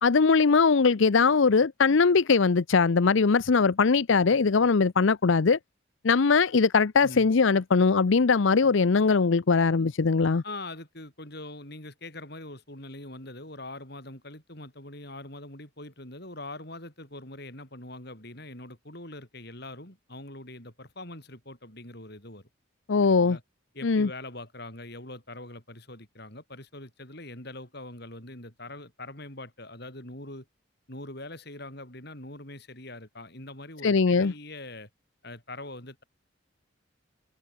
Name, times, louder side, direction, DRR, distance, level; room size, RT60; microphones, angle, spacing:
voice 1, 0.0-5.6 6.0-10.4 22.9-23.4 23.8-24.1 33.8-34.3, left 4 dB, 65° left, 0.6 m, -21 dB
voice 2, 10.4-22.5 23.0-23.4 23.7-30.5 30.9-34.9 35.2-36.0, left 2 dB, 50° left, 7.9 m, -43 dB
open air
head